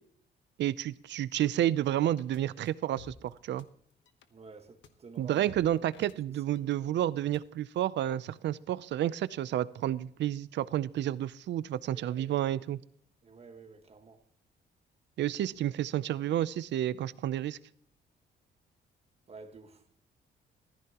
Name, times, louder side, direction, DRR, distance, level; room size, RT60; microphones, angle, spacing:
voice 1, 0.6-3.7 5.2-12.8 15.2-17.6, right 12 dB, 70° right, 0.6 m, -30 dB
sound 1, 2.2-2.4 2.6-3.6 3.9-4.2 4.8-4.9 5.1-6.8 7.0-7.4, left 6 dB, 85° left, 1.1 m, -54 dB
voice 2, 4.3-5.6 6.3-6.4 11.9-12.3 13.2-14.2 19.3-20.0, right 4 dB, 35° right, 1.5 m, -50 dB
15.5 x 14.0 x 3.0 m
cardioid pair, 125°, 19 cm